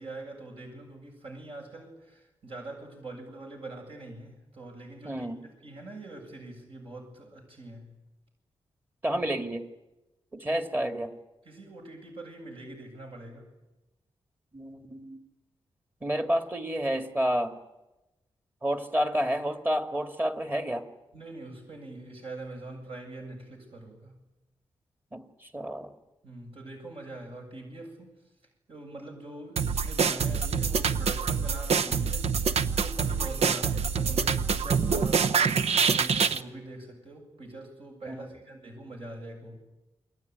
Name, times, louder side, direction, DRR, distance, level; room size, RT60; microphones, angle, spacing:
voice 1, 0.0-7.9 11.4-13.5 21.1-24.2 26.2-28.1 28.7-39.6, right 2 dB, 60° right, 2 dB, 7.7 m, -43 dB
voice 2, 5.0-5.4 9.0-9.7 10.3-11.1 14.5-15.2 16.0-17.6 18.6-20.9 25.1-25.9 33.6-33.7 38.1-38.3, equal, 20° right, 6 dB, 2.3 m, -30 dB
sound 1, 29.6-36.4, right 6 dB, 75° right, 1.0 m, -26 dB
29.0 x 22.0 x 9.5 m, 1.0 s
wide cardioid pair, 125°, 11 cm